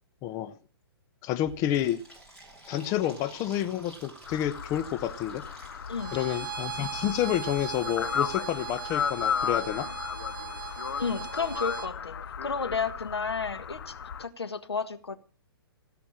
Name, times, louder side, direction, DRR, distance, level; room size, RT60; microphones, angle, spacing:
voice 1, 0.2-0.6 1.2-2.0 2.7-5.4 6.1-9.9, left 12 dB, 25° left, 0.7 m, -29 dB
Fill (with liquid), 1.4-7.1, right 1 dB, 5° left, 5.6 m, -51 dB
sound 1, 4.3-14.2, left 7 dB, 70° left, 0.9 m, -35 dB
voice 2, 5.9-6.4 11.0-12.2 12.4-15.2, left 5 dB, 90° left, 1.7 m, -32 dB
Bowed string instrument, 6.0-11.9, right 8 dB, 55° right, 2.1 m, -39 dB
16.5 x 6.0 x 8.8 m
hypercardioid pair, 130°, 13 cm